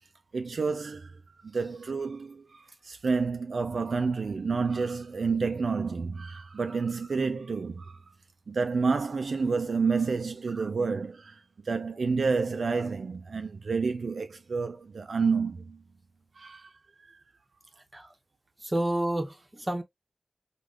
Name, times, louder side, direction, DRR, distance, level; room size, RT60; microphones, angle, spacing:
voice 1, 0.3-8.1 8.5-15.8 16.4-16.7 17.0-17.2, right 4 dB, 70° right, 0.3 m, -29 dB
voice 2, 18.6-19.8, right 1 dB, 25° right, 0.7 m, -29 dB
3.4 x 2.3 x 2.4 m
wide cardioid pair, 75°, 0 cm